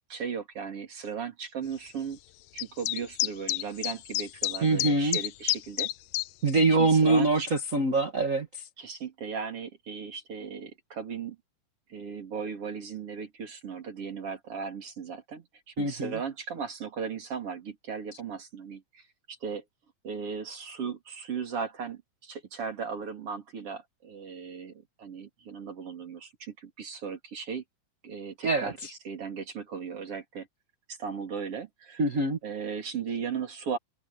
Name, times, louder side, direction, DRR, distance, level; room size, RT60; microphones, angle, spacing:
voice 1, 0.1-2.2 2.5-5.9 6.7-7.5 8.8-11.4 11.9-19.6 20.0-27.6 28.0-30.5 30.9-33.8, right 6 dB, 50° right, 3.9 m, -37 dB
sound 1, 2.6-6.3, left 17 dB, 80° left, 1.5 m, -29 dB
voice 2, 4.6-5.2 6.4-8.6 15.8-16.1 28.4-28.7 32.0-32.4, right 3 dB, 30° right, 1.8 m, -24 dB
omnidirectional pair, 3.5 m